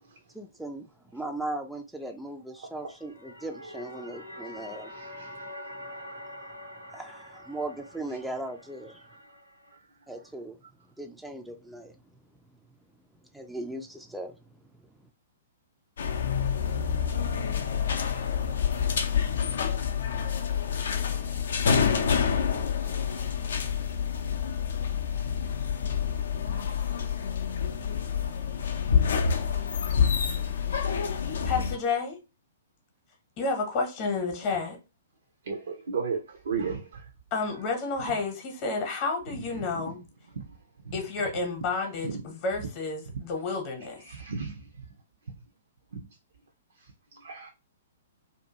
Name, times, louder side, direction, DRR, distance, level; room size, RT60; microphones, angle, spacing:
voice 1, 0.3-5.4 5.8-6.0 6.9-9.0 10.1-10.6 11.0-11.9 13.3-14.4, right 2 dB, ahead, 0.3 m, -38 dB
sound 1, 2.8-9.8, left 1 dB, 90° right, 0.7 m, -45 dB
sound 2, 16.0-31.8, left 7 dB, 60° left, 0.4 m, -27 dB
voice 2, 26.5-27.0 31.4-32.2 33.4-34.8 37.3-40.0 40.9-44.0, left 4 dB, 35° left, 0.8 m, -31 dB
voice 3, 35.5-36.2 36.5-36.8 40.9-41.0 42.0-42.1 44.1-44.6 45.9-46.0 47.2-47.5, right 5 dB, 60° right, 0.5 m, -32 dB
2.6 x 2.3 x 2.7 m
figure-of-eight pair, 115°, 0 cm